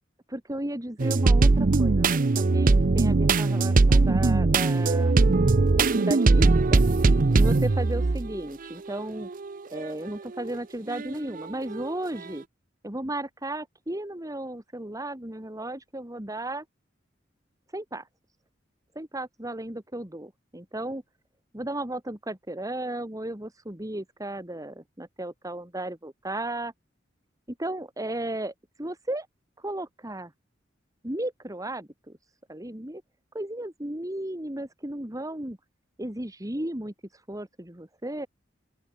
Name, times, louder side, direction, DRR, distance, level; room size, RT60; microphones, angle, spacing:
voice 1, 0.3-5.2 5.7-6.8 7.3-9.3 9.7-12.4 12.8-16.6 17.7-18.1 19.0-21.0 21.5-26.7 27.6-28.5 28.8-29.3 29.6-30.3 31.0-32.2 32.5-33.0 33.3-35.6 36.0-38.3, right 1 dB, 20° right, 2.4 m, -34 dB
sound 1, 1.0-8.4 8.9-9.8 10.4-10.6 10.9-11.9, right 3 dB, 45° right, 0.6 m, -21 dB
open air
head